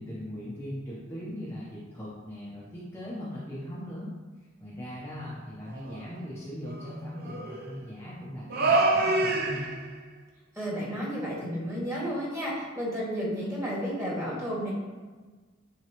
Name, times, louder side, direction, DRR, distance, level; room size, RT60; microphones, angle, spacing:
voice 1, 0.0-4.1 4.6-9.8, equal, 10° left, -8 dB, 0.9 m, -39 dB
sound 1, 5.8-6.0 6.7-7.8 8.5-10.0, right 2 dB, 50° right, 0.6 m, -26 dB
voice 2, 10.5-14.7, equal, 15° right, -6 dB, 2.0 m, -32 dB
9.1 x 3.9 x 3.1 m, 1.3 s
head